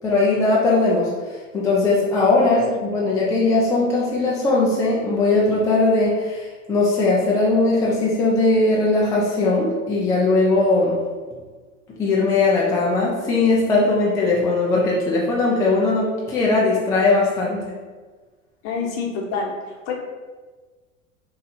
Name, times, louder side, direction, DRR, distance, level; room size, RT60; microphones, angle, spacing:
voice 1, 0.0-2.7 2.9-11.0 12.0-17.6, left 3 dB, 10° left, -5 dB, 0.3 m, -19 dB
voice 2, 18.6-19.5 19.9-20.0, left 5 dB, 40° left, 0 dB, 0.8 m, -26 dB
4.3 x 2.8 x 2.5 m, 1.4 s
figure-of-eight pair, 85°, 40 cm